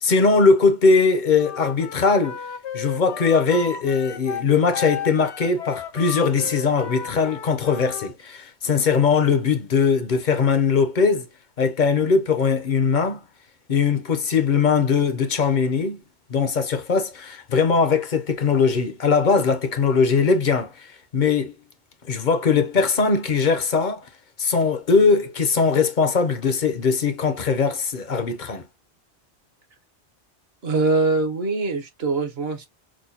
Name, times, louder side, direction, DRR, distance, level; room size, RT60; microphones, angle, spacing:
voice 1, 0.0-2.4 2.7-11.3 11.6-13.2 13.7-16.0 16.3-21.5 22.0-24.1 24.4-28.7, left 5 dB, 50° left, 0.8 m, -20 dB
Wind instrument woodwind instrument, 1.4-8.1, left 8 dB, 75° left, 1.0 m, -34 dB
voice 2, 30.6-32.7, right 3 dB, 65° right, 1.3 m, -23 dB
6.2 x 2.3 x 2.7 m
omnidirectional pair, 1.1 m